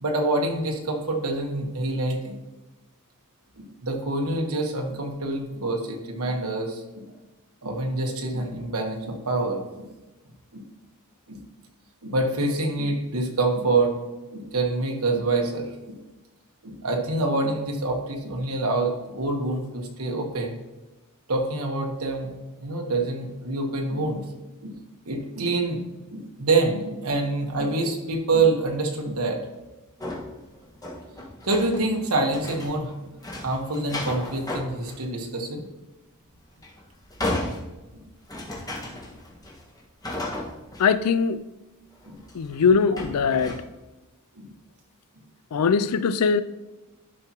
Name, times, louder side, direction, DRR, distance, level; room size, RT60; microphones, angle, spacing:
voice 1, 0.0-2.4 3.6-7.1 7.6-9.8 10.5-10.7 11.3-11.5 12.0-14.0 14.3-16.0 16.6-20.6 21.3-22.3 22.6-24.2 24.6-24.8 25.1-25.8 26.1-29.4 31.4-32.9 33.4-35.7 42.0-42.2 44.3-44.5, right 2 dB, 70° right, 3 dB, 1.3 m, -26 dB
sound 1, 30.0-32.9 33.2-35.0 35.4-35.5 36.4-40.8 41.9-42.6 43.0-43.5, left 1 dB, 15° left, 1.6 m, -34 dB
voice 2, 40.8-41.4 42.3-43.6 45.5-46.4, left 5 dB, 85° left, 14 dB, 0.4 m, -21 dB
11.0 x 5.9 x 3.0 m, 1.1 s
head